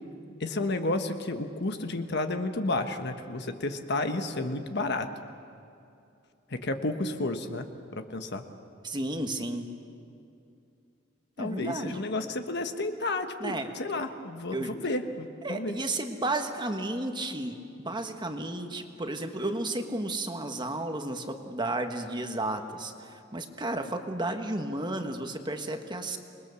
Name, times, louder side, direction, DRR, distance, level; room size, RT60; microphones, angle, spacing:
voice 1, 0.4-5.1 6.5-7.7 7.9-8.4 11.4-15.8, left 2 dB, 55° left, 7 dB, 1.3 m, -31 dB
voice 2, 8.8-9.7 11.4-12.0 13.4-13.7 14.5-14.7 15.4-26.2, right 2 dB, 20° right, 5 dB, 1.4 m, -33 dB
27.5 x 21.0 x 7.0 m, 2.6 s
head